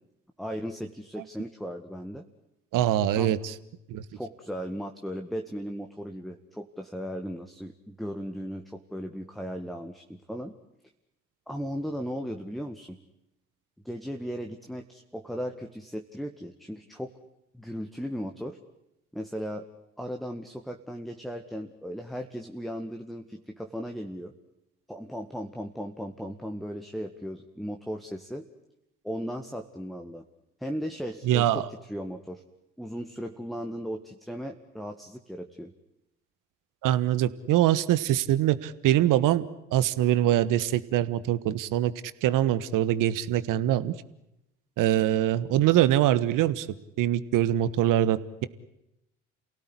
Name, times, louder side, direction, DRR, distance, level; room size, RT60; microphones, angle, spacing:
voice 1, 0.4-2.3 3.2-3.4 4.1-10.5 11.5-13.0 13.9-17.1 17.5-18.6 19.1-19.7 20.0-24.3 24.9-28.5 29.0-30.3 30.6-32.4 32.8-35.7, equal, ahead, 4 dB, 1.9 m, -36 dB
voice 2, 2.7-3.5 3.9-4.0 31.2-31.7 36.8-39.4 39.7-41.9 42.2-43.9 44.8-46.7 47.0-48.5, right 12 dB, 60° right, 15 dB, 1.5 m, -23 dB
29.0 x 17.5 x 9.9 m, 0.87 s
hypercardioid pair, 55°, 36 cm